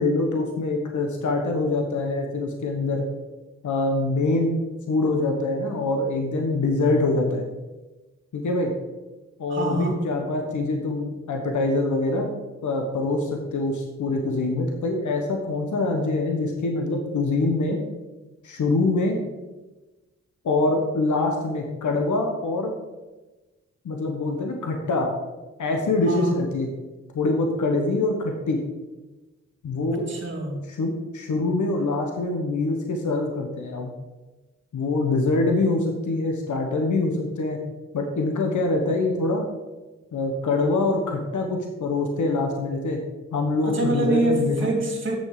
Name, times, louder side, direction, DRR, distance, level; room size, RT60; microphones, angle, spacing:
voice 1, 0.0-3.0 3.6-7.4 8.3-8.7 9.4-12.3 12.6-17.8 18.4-19.2 20.4-22.7 23.8-25.1 25.6-26.7 27.1-28.6 29.6-30.0 30.7-33.9 34.7-37.6 37.9-39.4 40.1-43.0 43.3-44.7, left 2 dB, 75° left, 2 dB, 1.3 m, -24 dB
voice 2, 9.5-10.0 26.1-26.3 29.9-30.6 43.6-45.2, right 2 dB, 40° right, 0 dB, 2.8 m, -25 dB
8.3 x 6.8 x 4.9 m, 1.1 s
cardioid pair, 55°, 30 cm